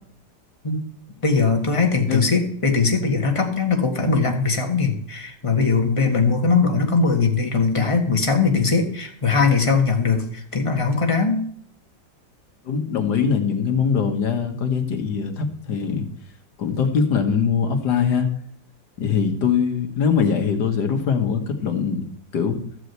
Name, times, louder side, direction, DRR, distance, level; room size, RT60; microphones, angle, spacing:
voice 1, 1.2-11.4 14.9-15.0, left 4 dB, 20° left, 2 dB, 1.4 m, -20 dB
voice 2, 12.6-16.1 16.6-18.3 19.0-22.0 22.3-22.6, left 6 dB, 65° left, 6 dB, 1.8 m, -22 dB
13.5 x 4.9 x 8.0 m, 0.64 s
omnidirectional pair, 2.0 m